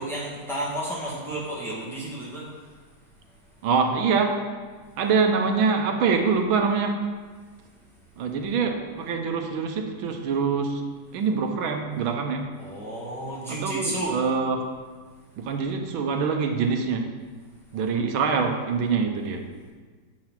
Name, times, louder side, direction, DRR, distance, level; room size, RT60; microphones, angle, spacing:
voice 1, 0.0-2.4 12.6-14.2, right 1 dB, ahead, -7 dB, 1.6 m, -31 dB
voice 2, 3.6-4.4 5.0-7.0 8.2-10.8 11.1-12.5 13.5-14.7 15.4-17.1 17.7-19.5, right 5 dB, 75° right, 4 dB, 1.5 m, -25 dB
7.5 x 4.6 x 5.7 m, 1.5 s
omnidirectional pair, 2.3 m